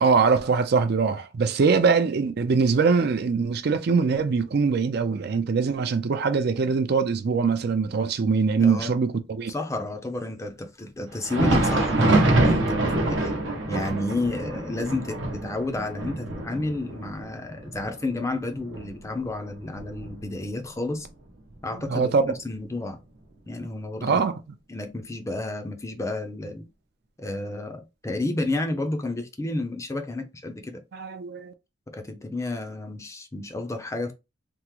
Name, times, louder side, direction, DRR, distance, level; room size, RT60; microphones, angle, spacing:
voice 1, 0.0-9.5 21.9-22.3 24.0-24.4 30.9-31.5, right 5 dB, 55° right, 0.4 m, -22 dB
voice 2, 8.6-8.9 9.5-12.8 13.1-13.3 13.7-21.1 21.6-22.1 22.4-23.0 23.5-24.2 24.7-26.7 27.2-30.8 31.9-34.1, left 2 dB, 15° left, 0.5 m, -31 dB
Thunder, 11.1-20.6 20.9-21.1 21.8-22.0 22.9-23.0, right 2 dB, 80° right, 0.8 m, -25 dB
3.4 x 2.0 x 3.0 m
head